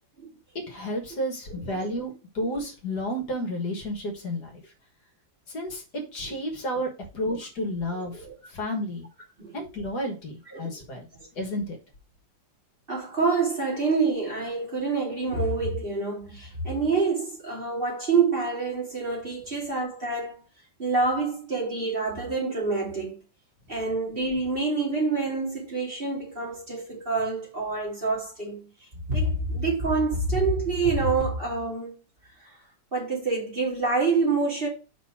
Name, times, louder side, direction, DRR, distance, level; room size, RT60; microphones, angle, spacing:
voice 1, 0.7-4.6 5.5-6.9 7.1-9.1 9.5-11.1 11.4-11.8, equal, 60° left, 2.1 m, -31 dB
voice 2, 10.5-10.8 12.9-20.4 20.8-23.2 23.7-28.7 29.1-31.9 32.9-34.7, right 4 dB, 30° right, 2.6 m, -27 dB
5.2 x 4.2 x 5.9 m
omnidirectional pair, 2.0 m